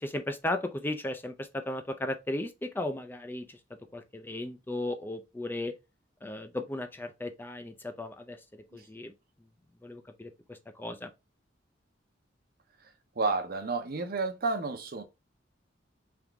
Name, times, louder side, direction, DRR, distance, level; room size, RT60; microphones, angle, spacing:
voice 1, 0.0-3.6 3.9-5.7 6.2-9.1 9.8-11.1, left 1 dB, 10° left, 0.4 m, -36 dB
voice 2, 13.2-15.0, right 3 dB, 55° right, 0.7 m, -31 dB
3.5 x 2.9 x 3.4 m
head